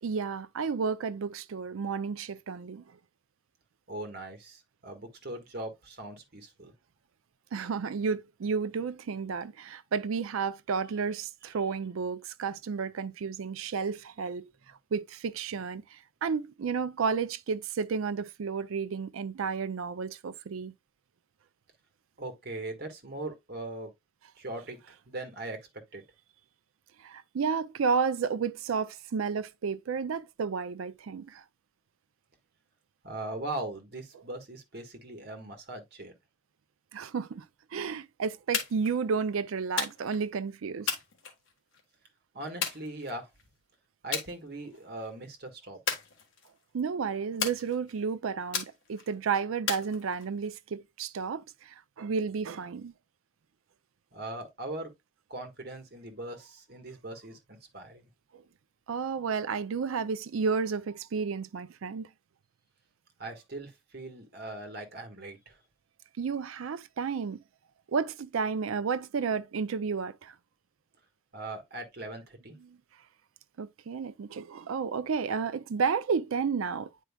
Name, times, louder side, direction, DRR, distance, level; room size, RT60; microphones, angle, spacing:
voice 1, 0.0-2.8 7.5-14.5 14.9-20.7 27.0-31.4 36.9-37.4 37.7-40.9 46.7-52.9 58.3-58.4 58.9-62.1 66.2-67.4 67.9-70.3 72.6-72.8 73.6-76.9, right 5 dB, 90° right, 0.4 m, -32 dB
voice 2, 3.9-6.7 22.2-23.9 24.4-24.8 25.1-25.6 25.9-26.0 33.0-36.1 42.3-43.3 44.0-45.8 54.1-54.9 55.3-58.1 63.2-65.6 71.3-72.5, right 2 dB, 50° right, 1.5 m, -40 dB
sound 1, 38.5-39.0 39.8-40.2 40.9-41.8 42.6-43.4 44.1-44.3 44.7-45.1 45.9-46.6 47.4-48.0 48.5-49.1 49.7-50.5, left 6 dB, 70° left, 1.5 m, -34 dB
9.1 x 4.6 x 2.3 m
head